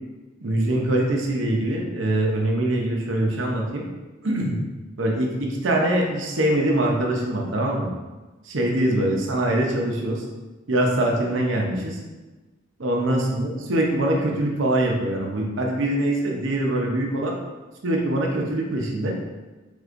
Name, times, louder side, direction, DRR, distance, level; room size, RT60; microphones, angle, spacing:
voice 1, 0.4-3.8 4.2-4.6 5.0-7.9 8.4-10.2 10.7-12.0 12.8-17.3 17.8-19.2, right 1 dB, 70° right, 0 dB, 0.7 m, -23 dB
5.0 x 3.5 x 2.5 m, 1.2 s
head